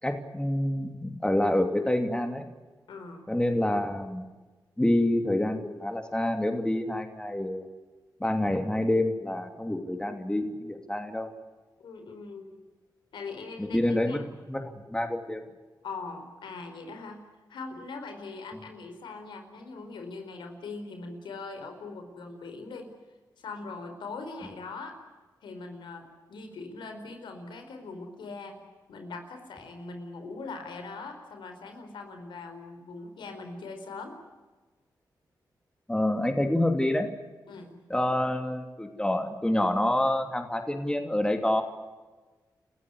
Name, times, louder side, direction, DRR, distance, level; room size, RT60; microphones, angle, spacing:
voice 1, 0.0-2.5 3.3-4.3 4.8-7.6 8.2-11.3 13.6-14.2 14.5-15.4 35.9-37.1 37.9-41.6, left 1 dB, 10° left, 5 dB, 2.8 m, -27 dB
voice 2, 2.9-3.3 11.8-12.7 13.1-13.8 14.1-14.2 15.8-17.2 17.5-22.9 23.4-25.0 25.4-28.6 28.9-34.1 37.5-37.8, left 3 dB, 90° left, 6 dB, 4.4 m, -41 dB
29.5 x 15.0 x 9.8 m, 1.3 s
cardioid pair, 60°, 8 cm